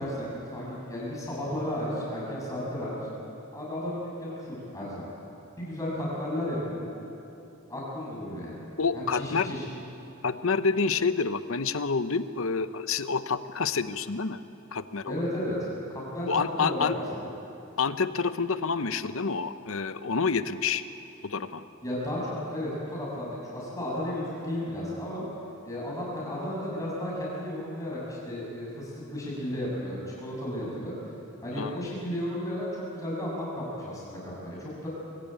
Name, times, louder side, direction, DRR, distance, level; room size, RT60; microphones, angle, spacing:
voice 1, 0.0-3.0 3.5-5.1 5.6-6.9 7.7-8.6 8.9-9.6 15.1-15.5 15.9-17.3 21.8-25.2 25.6-30.9 31.4-34.9, left 1 dB, 15° left, -5 dB, 7.0 m, -33 dB
voice 2, 8.8-9.5 10.2-14.4 14.7-15.2 16.3-17.0 17.8-20.8 21.2-21.6 31.6-31.8, left 5 dB, 70° left, 12 dB, 0.8 m, -28 dB
23.5 x 15.5 x 9.0 m, 2.8 s
head